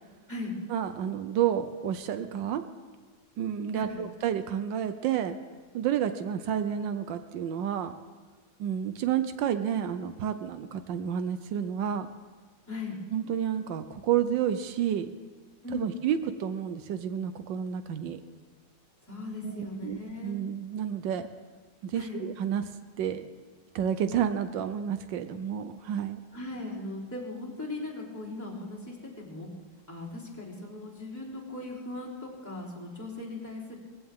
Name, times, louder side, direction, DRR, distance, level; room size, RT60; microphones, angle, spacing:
voice 1, 0.7-2.6 3.4-5.4 5.7-7.9 8.6-12.1 13.1-15.1 15.7-18.2 19.4-21.3 21.8-22.7 23.0-23.2 23.7-26.2, right 9 dB, 85° right, 10 dB, 1.4 m, -30 dB
voice 2, 15.6-16.0 19.0-20.4 21.9-22.2 26.3-29.5 29.9-33.8, left 2 dB, 10° left, -6 dB, 3.4 m, -38 dB
20.0 x 15.0 x 3.7 m, 1.5 s
omnidirectional pair, 1.9 m